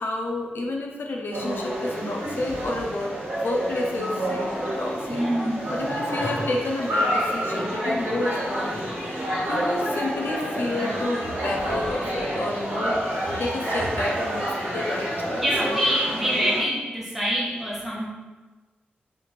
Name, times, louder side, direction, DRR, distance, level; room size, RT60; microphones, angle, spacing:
voice 1, 0.0-5.3 5.7-13.1 13.4-15.5, left 2 dB, 70° left, 0 dB, 0.4 m, -30 dB
sound 1, 1.3-16.6, equal, 70° right, 1.2 m, -28 dB
voice 2, 5.1-5.7 15.3-18.1, equal, 5° right, -6 dB, 0.8 m, -25 dB
3.4 x 2.4 x 3.1 m, 1.2 s
wide cardioid pair, 140°, 4 cm